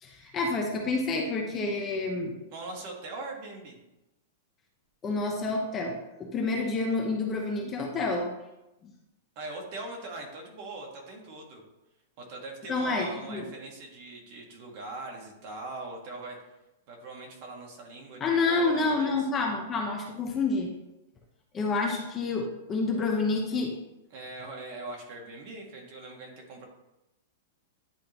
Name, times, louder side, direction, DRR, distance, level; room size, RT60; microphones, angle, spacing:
voice 1, 0.0-2.3 5.0-8.3 8.8-8.9 12.7-13.4 18.2-20.7 21.5-23.8, left 3 dB, 20° left, 1 dB, 0.8 m, -28 dB
voice 2, 2.5-3.8 9.4-11.6 12.2-16.4 16.9-19.3 24.1-26.6, right 2 dB, 45° right, 0 dB, 1.7 m, -41 dB
10.5 x 3.7 x 3.0 m, 0.93 s
supercardioid pair, 155°, 0 cm